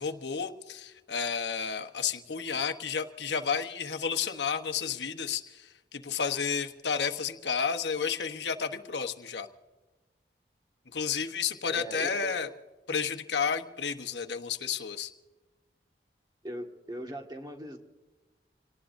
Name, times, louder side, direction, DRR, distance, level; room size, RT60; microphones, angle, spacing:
voice 1, 0.0-9.5 10.9-12.5 12.9-15.1, left 6 dB, 80° left, 7 dB, 1.1 m, -31 dB
voice 2, 11.7-12.4 16.4-17.8, equal, 25° right, 2 dB, 1.7 m, -40 dB
27.0 x 18.5 x 2.6 m, 1.2 s
head